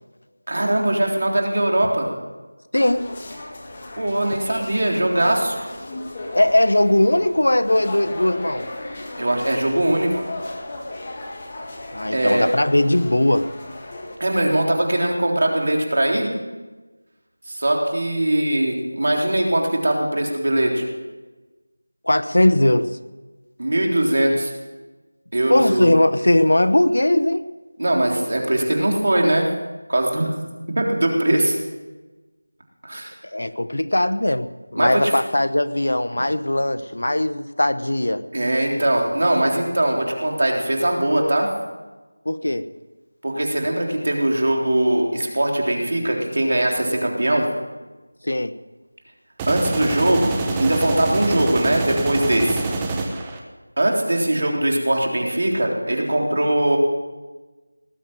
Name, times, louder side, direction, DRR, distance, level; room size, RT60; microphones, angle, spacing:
voice 1, 0.5-2.1 4.0-5.6 9.2-10.3 12.1-12.5 14.2-16.3 17.5-20.8 23.6-24.5 25.3-25.9 27.8-29.5 29.9-30.3 30.8-31.6 32.8-33.1 34.8-35.1 38.3-41.5 43.2-47.5 49.5-52.6 53.8-56.8, right 1 dB, 55° right, 0 dB, 3.6 m, -21 dB
sound 1, 2.7-14.2, left 2 dB, 25° left, 2.0 m, -36 dB
voice 2, 6.3-8.7 11.9-13.5 22.0-22.9 25.5-27.4 33.3-38.2 42.2-42.6 48.2-48.5, left 1 dB, 75° left, 12 dB, 0.9 m, -19 dB
sound 2, 49.4-53.4, right 3 dB, 10° right, 0.9 m, -26 dB
19.0 x 7.5 x 9.0 m, 1.2 s
figure-of-eight pair, 175°, 0 cm